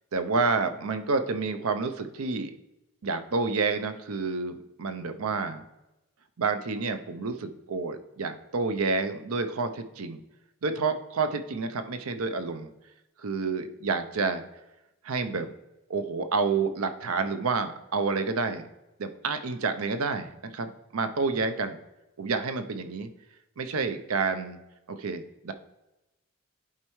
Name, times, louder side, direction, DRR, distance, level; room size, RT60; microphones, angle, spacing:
voice 1, 0.1-2.5 3.0-5.6 6.4-10.2 10.6-12.7 13.2-14.4 15.0-15.5 15.9-18.7 19.0-21.8 22.2-23.1 23.6-24.6 24.9-25.5, right 4 dB, 80° right, 9 dB, 0.6 m, -29 dB
11.0 x 4.3 x 3.1 m, 0.95 s
head